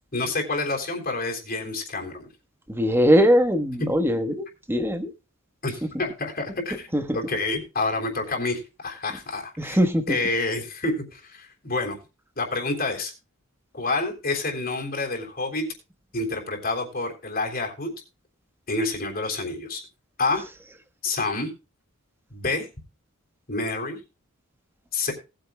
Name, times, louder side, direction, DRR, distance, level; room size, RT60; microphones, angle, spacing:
voice 1, 0.1-2.3 3.8-3.9 5.6-6.9 7.1-9.8 10.1-12.0 12.4-13.1 13.7-15.6 16.1-17.9 18.7-19.8 20.2-20.4 21.0-21.5 22.3-22.7 23.5-24.0 24.9-25.1, left 3 dB, 45° left, 1 dB, 3.3 m, -28 dB
voice 2, 2.7-5.1 6.9-7.2 9.6-10.2, equal, 10° right, 8 dB, 1.3 m, -21 dB
18.5 x 8.9 x 2.3 m, 0.29 s
head